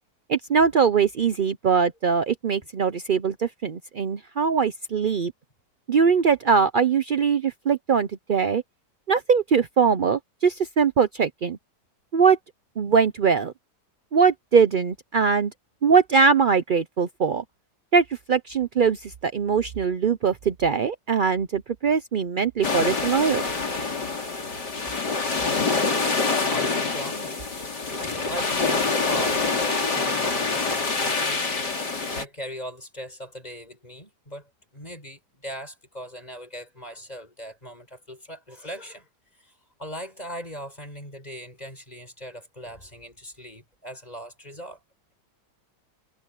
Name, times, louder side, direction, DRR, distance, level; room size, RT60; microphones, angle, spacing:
voice 1, 0.3-5.3 5.9-8.6 9.1-11.6 12.1-12.4 12.8-13.5 14.1-15.5 15.8-17.4 17.9-23.5, right 6 dB, 70° right, 0.4 m, -21 dB
sound 1, 22.6-32.2, left 4 dB, 70° left, 3.8 m, -26 dB
voice 2, 26.1-27.4 27.9-39.1 39.4-39.5 39.8-44.8, equal, 20° left, 7.5 m, -39 dB
omnidirectional pair, 1.9 m